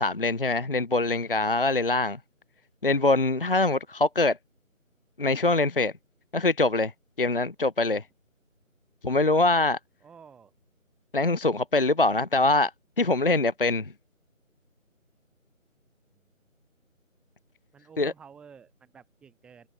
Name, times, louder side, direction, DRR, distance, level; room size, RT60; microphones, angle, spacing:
voice 1, 0.0-2.2 2.8-4.4 5.2-5.9 6.3-6.9 7.2-8.0 9.0-9.8 11.1-12.7 13.0-13.9 18.0-18.1, left 2 dB, 40° left, 0.8 m, -23 dB
voice 2, 10.0-10.5 17.7-19.7, right 6 dB, ahead, 4.6 m, -51 dB
figure-of-eight pair, 170°, 41 cm